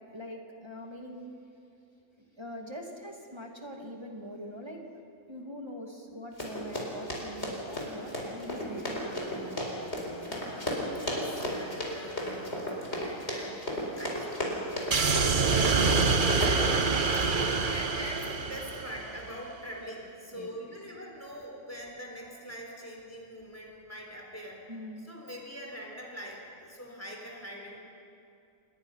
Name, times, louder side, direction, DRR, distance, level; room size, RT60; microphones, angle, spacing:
voice 1, 0.0-1.3 2.4-4.8 5.3-10.4 17.4-17.6 20.3-20.5 24.7-25.1, equal, 20° right, 1 dB, 2.3 m, -44 dB
Run, 6.4-16.5, left 1 dB, 50° left, 4.6 m, -34 dB
voice 2, 10.9-14.5 15.8-16.0 16.3-24.6 25.0-27.8, equal, 10° left, -1 dB, 4.2 m, -43 dB
sound 1, 14.9-19.3, right 4 dB, 40° right, 1.1 m, -26 dB
28.5 x 20.5 x 5.7 m, 2.6 s
omnidirectional pair, 1.4 m